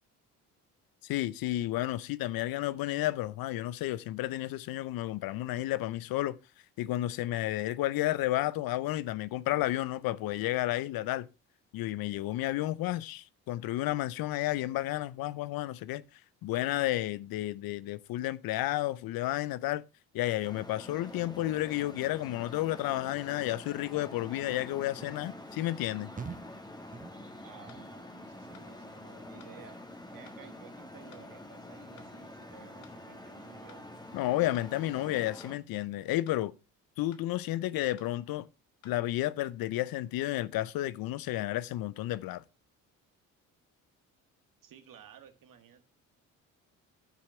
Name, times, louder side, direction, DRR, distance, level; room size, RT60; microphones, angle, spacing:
voice 1, 1.0-6.4 6.8-11.3 11.7-16.0 16.4-19.8 20.1-26.1 34.1-36.5 37.0-38.5 38.8-42.4, left 15 dB, 65° left, 0.6 m, -32 dB
Traffic noise roadway noise, 20.4-35.6, left 1 dB, 10° left, 1.8 m, -47 dB
sound 1, 25.0-25.2 25.7-25.9 26.2-26.6 26.9-27.4 27.7-28.1 28.4-28.8 29.2-29.5 29.9-30.1, right 5 dB, 20° right, 0.9 m, -46 dB
voice 2, 27.4-29.8 30.1-33.9 44.6-45.8, right 8 dB, 55° right, 1.7 m, -54 dB
sound 2, 27.7-27.9 28.5-28.7 29.4-29.6 30.3-30.4 31.1-31.3 32.0-32.1 32.8-33.0 33.7-33.8 34.5-34.7 35.4-35.6 36.3-36.4 37.1-37.3 38.0-38.1 38.8-39.0, left 9 dB, 80° left, 1.4 m, -58 dB
11.5 x 5.8 x 4.3 m
hypercardioid pair, 55°, 39 cm